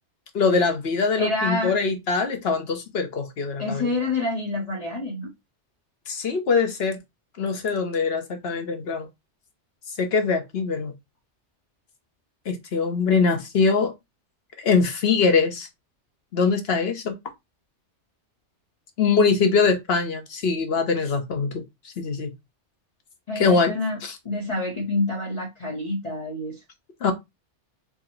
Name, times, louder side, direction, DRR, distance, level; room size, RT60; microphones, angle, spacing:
voice 1, 0.3-3.9 6.1-7.0 7.4-9.1 10.0-10.9 12.5-13.9 14.6-15.7 16.3-17.1 19.0-21.6 22.0-22.3 23.4-23.7 24.0-24.2 27.0-27.1, left 4 dB, 60° left, 1.2 m, -22 dB
voice 2, 1.2-1.7 3.6-5.3 23.3-24.0 24.2-26.6, left 2 dB, 35° left, 1.0 m, -27 dB
4.7 x 2.2 x 4.4 m
omnidirectional pair, 1.2 m